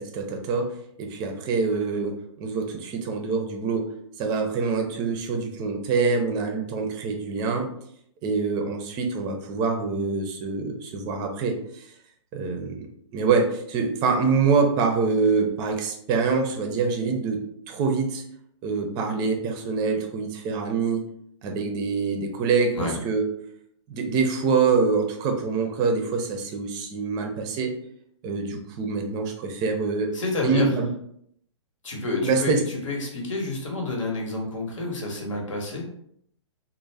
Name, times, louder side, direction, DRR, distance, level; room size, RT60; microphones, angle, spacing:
voice 1, 0.0-3.9 4.2-7.7 8.2-11.9 12.3-12.9 13.1-17.4 17.7-18.2 18.6-21.0 21.4-23.2 23.9-27.7 28.2-30.1 30.4-30.9 32.2-32.6, right 4 dB, 25° right, 3 dB, 0.4 m, -25 dB
voice 2, 30.1-30.7 31.8-35.9, left 2 dB, 80° left, 0 dB, 1.0 m, -29 dB
2.5 x 2.0 x 3.2 m, 0.70 s
hypercardioid pair, 135°, 16 cm